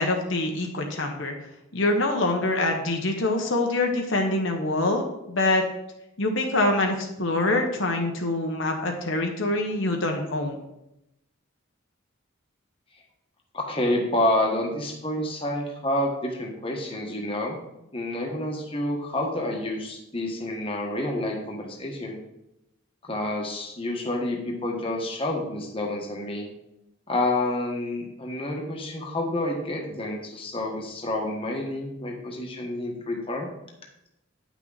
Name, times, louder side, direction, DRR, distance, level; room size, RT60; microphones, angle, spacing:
voice 1, 0.0-1.3 1.7-5.6 6.2-10.6, left 2 dB, 65° left, 3 dB, 1.1 m, -25 dB
voice 2, 13.5-17.6 17.9-22.2 23.1-26.5 27.1-33.5, left 1 dB, 25° left, 0 dB, 1.4 m, -28 dB
9.7 x 6.1 x 4.0 m, 0.88 s
head